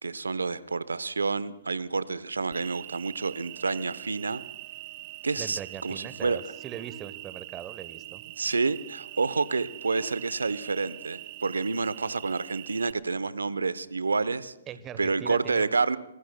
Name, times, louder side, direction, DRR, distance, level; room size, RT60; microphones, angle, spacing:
voice 1, 0.0-4.4 5.2-6.4 8.4-14.5 15.0-16.0, right 4 dB, 80° right, 17 dB, 0.7 m, -29 dB
Cricket, 2.5-12.9, right 19 dB, 40° right, 0.4 m, -43 dB
voice 2, 5.4-8.2 14.7-15.8, right 9 dB, 25° right, 14 dB, 0.9 m, -40 dB
27.0 x 20.0 x 2.2 m, 0.91 s
figure-of-eight pair, 125°, 0 cm